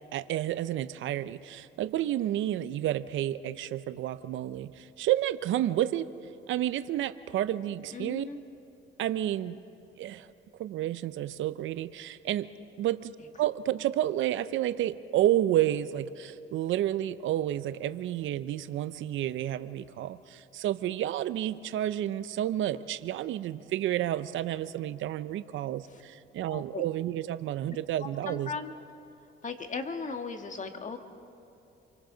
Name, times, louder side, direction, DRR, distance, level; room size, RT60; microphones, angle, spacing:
voice 1, 0.1-6.1 6.5-8.3 9.0-9.6 10.0-10.3 10.6-12.5 12.8-28.5, right 12 dB, 80° right, 13 dB, 0.6 m, -30 dB
voice 2, 7.9-8.4 25.9-26.0 26.5-26.8 28.0-28.7 29.4-31.0, left 4 dB, 40° left, 6 dB, 1.7 m, -37 dB
28.5 x 24.0 x 3.9 m, 2.9 s
cardioid pair, 90°, 20 cm